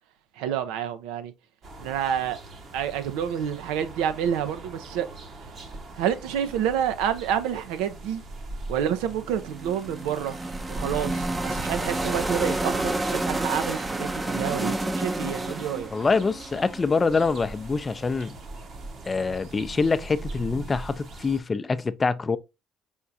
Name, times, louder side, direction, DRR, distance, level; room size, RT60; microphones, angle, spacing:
voice 1, 0.4-1.3 1.8-2.4 2.7-5.1 6.0-8.2 8.7-10.4 10.7-15.9, right 9 dB, 85° right, 0.5 m, -28 dB
sound 1, 1.6-21.4, right 2 dB, 55° right, 1.0 m, -42 dB
sound 2, 9.4-17.4, right 2 dB, 20° right, 0.5 m, -30 dB
voice 2, 15.9-18.4 19.1-22.4, left 4 dB, 30° left, 0.4 m, -25 dB
4.6 x 3.6 x 2.6 m
supercardioid pair, 65°, 0 cm